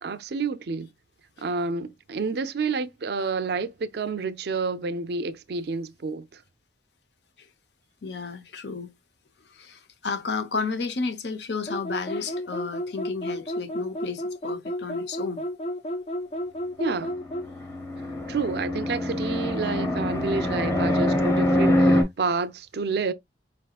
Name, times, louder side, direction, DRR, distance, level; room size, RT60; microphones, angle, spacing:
voice 1, 0.0-0.9 1.4-6.4 16.8-17.2 18.3-23.1, right 4 dB, 60° right, 0.5 m, -29 dB
voice 2, 8.0-8.9 9.5-15.5, left 4 dB, 65° left, 0.8 m, -32 dB
sound 1, 11.7-17.5, equal, 35° left, 0.4 m, -32 dB
Fixed-wing aircraft airplane, 17.1-22.0, left 1 dB, 15° left, 0.9 m, -24 dB
4.8 x 3.4 x 2.3 m
head